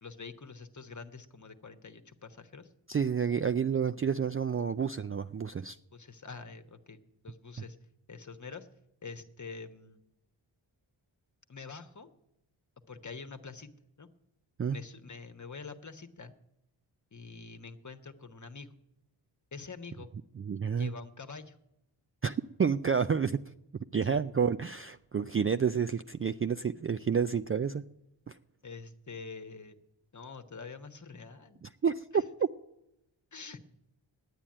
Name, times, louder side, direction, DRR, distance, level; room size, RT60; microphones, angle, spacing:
voice 1, 0.0-2.7 5.9-7.8 8.1-8.7 9.0-10.0 11.5-12.1 12.9-13.7 14.0-14.1 14.7-16.3 17.1-18.7 19.5-20.1 20.8-21.6 24.0-24.2 28.6-29.8 30.1-31.6 32.1-32.2 33.3-33.6, left 4 dB, 35° left, 8 dB, 1.2 m, -46 dB
voice 2, 2.9-5.8 14.6-14.8 20.4-20.9 22.2-23.4 23.9-27.8 28.3-28.4 31.8-32.2, right 6 dB, 30° right, 10 dB, 0.4 m, -29 dB
10.0 x 9.0 x 8.6 m, 0.86 s
cardioid pair, 50°, 48 cm